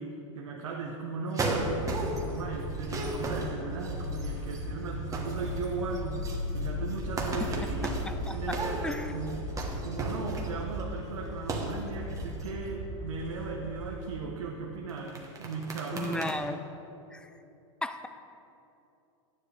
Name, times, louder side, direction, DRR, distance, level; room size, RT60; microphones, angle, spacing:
voice 1, 0.0-7.9 8.3-9.5 9.8-16.3, right 4 dB, 85° right, -1 dB, 1.0 m, -37 dB
sound 1, 1.3-2.4 2.7-4.6 4.9-5.7 5.9-10.8 11.4-11.8 12.1-12.5 14.9-16.3, right 2 dB, 20° right, 1.3 m, -35 dB
sound 2, 1.5-14.0, left 1 dB, 65° left, 2.0 m, -37 dB
voice 2, 7.8-8.6 8.8-9.2 15.9-16.6 17.1-17.3 17.8-18.1, left 1 dB, 5° left, 9 dB, 0.4 m, -35 dB
11.0 x 9.7 x 3.3 m, 2.8 s
hypercardioid pair, 110°, 16 cm